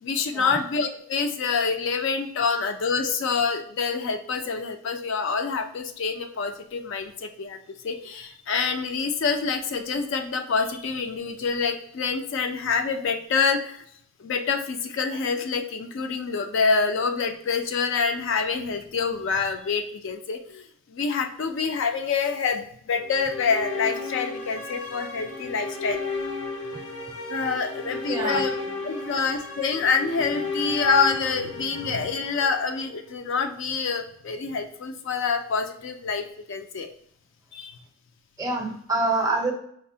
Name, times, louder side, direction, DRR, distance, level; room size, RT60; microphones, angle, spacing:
voice 1, 0.0-7.6 7.8-13.8 14.2-20.6 20.9-26.0 27.3-28.5 28.8-36.9 37.5-37.8, left 5 dB, 60° left, 6 dB, 0.4 m, -26 dB
sound 1, 23.0-33.2, left 3 dB, 85° left, 0.8 m, -34 dB
voice 2, 28.1-28.4 38.4-39.5, right 2 dB, 15° right, 1 dB, 0.5 m, -26 dB
4.4 x 2.0 x 2.6 m, 0.67 s
head